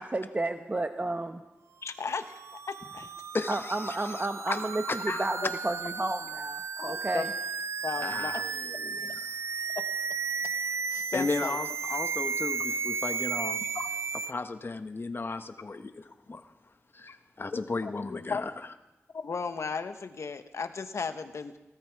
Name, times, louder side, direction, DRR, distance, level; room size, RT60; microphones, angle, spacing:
voice 1, 0.0-1.4 3.5-7.3, right 2 dB, 30° right, 7 dB, 0.9 m, -32 dB
voice 2, 1.8-2.3 2.7-3.1 5.4-5.5 6.8-7.3 7.8-8.3 10.9-11.6 13.6-13.9 17.1-17.2 17.5-17.9 18.3-18.4 19.1-21.6, left 5 dB, 70° left, 9 dB, 1.2 m, -35 dB
sound 1, 2.1-14.3, right 5 dB, 65° right, 0.5 m, -34 dB
voice 3, 3.3-4.0 4.5-4.6 4.9-5.4 8.0-9.1 11.1-13.6 14.3-16.4 16.9-18.5, left 3 dB, 45° left, 9 dB, 1.3 m, -35 dB
19.5 x 13.5 x 4.8 m, 1.0 s
cardioid pair, 50°, 5 cm